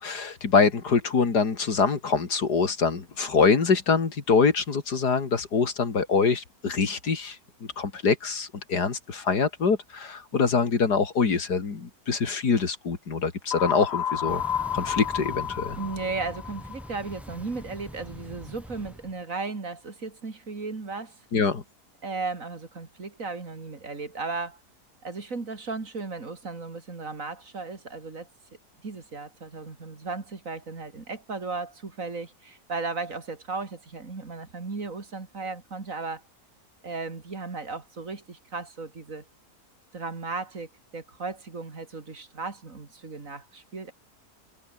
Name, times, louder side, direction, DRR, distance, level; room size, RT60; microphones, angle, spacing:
voice 1, 0.0-7.4 7.8-14.4 14.7-15.8 21.3-21.6, left 5 dB, 80° left, 3.2 m, -24 dB
sound 1, 13.5-17.4, left 8 dB, 50° left, 0.9 m, -31 dB
sound 2, 14.3-19.2, equal, ahead, 7.2 m, -43 dB
voice 2, 15.7-21.2 22.0-24.6 25.0-28.3 28.8-36.2 36.8-39.2 39.9-43.9, right 3 dB, 55° right, 3.1 m, -35 dB
omnidirectional pair, 1.7 m